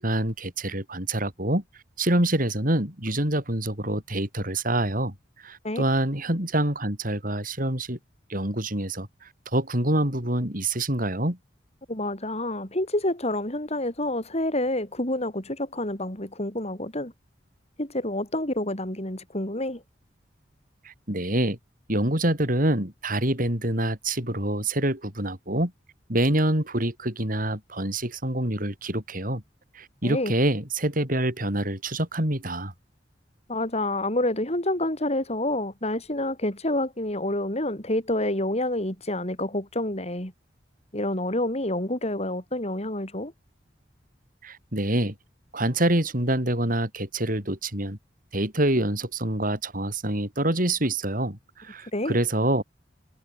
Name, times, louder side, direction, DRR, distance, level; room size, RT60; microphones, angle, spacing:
voice 1, 0.0-1.6 2.0-5.1 5.4-8.0 8.3-9.1 9.5-11.4 20.8-21.6 21.9-25.7 26.1-29.4 29.7-32.7 44.4-45.1 45.5-48.0 48.3-52.6, right 1 dB, 50° right, 7.5 m, -26 dB
voice 2, 11.9-17.1 17.8-19.8 30.0-30.3 33.5-40.3 40.9-43.3 51.9-52.2, left 1 dB, 35° left, 6.3 m, -28 dB
head